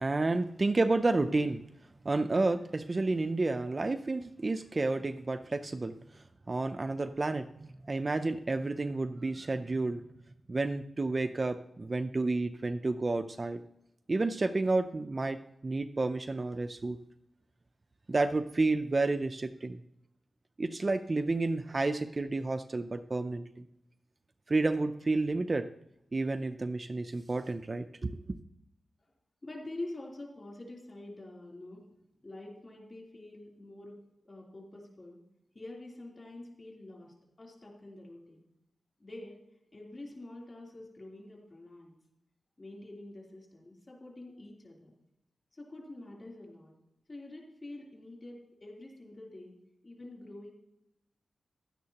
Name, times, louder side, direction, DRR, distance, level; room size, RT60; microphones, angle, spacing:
voice 1, 0.0-1.6 2.0-10.0 10.5-13.6 14.1-17.0 18.1-19.8 20.6-23.7 24.5-25.7 26.1-28.2, right 3 dB, 30° right, 9 dB, 0.4 m, -30 dB
voice 2, 29.4-31.8 32.2-34.0 34.2-35.2 35.5-38.4 39.0-39.4 39.7-41.9 42.6-44.9 45.5-46.7 47.1-49.5 49.8-50.5, left 2 dB, 30° left, -2 dB, 3.3 m, -46 dB
16.0 x 11.5 x 2.9 m, 0.83 s
wide cardioid pair, 170°, 0 cm